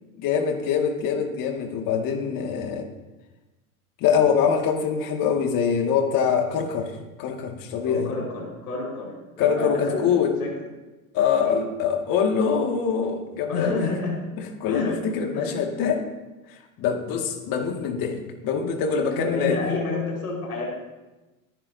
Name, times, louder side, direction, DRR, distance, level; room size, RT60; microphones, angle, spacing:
voice 1, 0.2-2.9 4.0-6.9 7.2-8.1 9.4-10.4 11.1-13.8 14.4-16.1 16.8-19.6, left 7 dB, 45° left, 3 dB, 2.1 m, -24 dB
voice 2, 7.8-10.5 11.4-11.7 13.5-14.2 14.7-14.9 15.3-15.6 19.1-20.7, left 3 dB, 90° left, -3 dB, 4.9 m, -29 dB
24.0 x 10.5 x 2.7 m, 1.1 s
hypercardioid pair, 100°, 45 cm